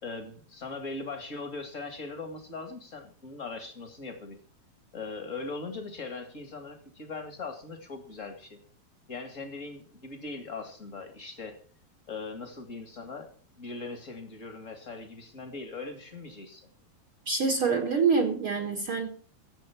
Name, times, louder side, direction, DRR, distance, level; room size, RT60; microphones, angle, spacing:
voice 1, 0.0-4.4 4.9-8.6 9.1-11.6 12.1-13.3 13.6-16.7, left 3 dB, 30° left, 1.6 m, -40 dB
voice 2, 17.2-19.1, right 5 dB, 50° right, 1.7 m, -26 dB
15.0 x 7.9 x 6.0 m
omnidirectional pair, 4.3 m